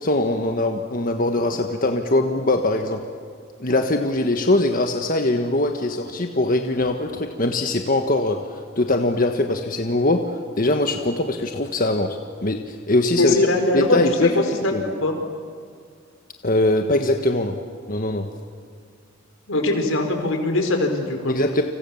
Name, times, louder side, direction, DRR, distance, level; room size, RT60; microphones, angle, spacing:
voice 1, 0.0-3.0 3.6-13.3 13.7-14.4 14.7-14.8 16.4-17.5 17.9-18.2 21.3-21.6, left 2 dB, 45° left, 5 dB, 1.5 m, -22 dB
voice 2, 13.2-15.2 19.5-21.3, left 2 dB, 85° left, 5 dB, 4.6 m, -21 dB
30.0 x 27.0 x 7.2 m, 2.1 s
head